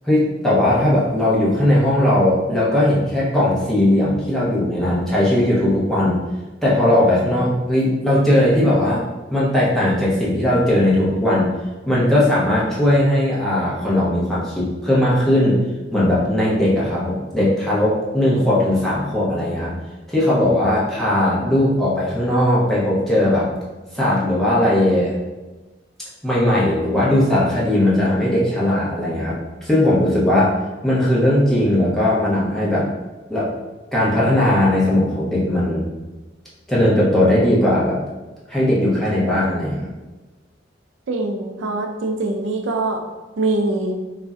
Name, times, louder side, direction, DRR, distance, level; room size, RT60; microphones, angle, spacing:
voice 1, 0.0-6.2 6.6-9.0 9.3-11.5 11.8-15.6 15.9-19.7 20.1-23.5 23.9-25.1 26.2-30.5 30.8-32.9 33.3-33.5 33.9-35.9 36.7-38.0 38.5-39.9, left 1 dB, ahead, -8 dB, 0.7 m, -18 dB
voice 2, 41.1-43.0 43.4-44.0, right 2 dB, 90° right, 3 dB, 0.4 m, -23 dB
2.5 x 2.1 x 3.5 m, 1.2 s
head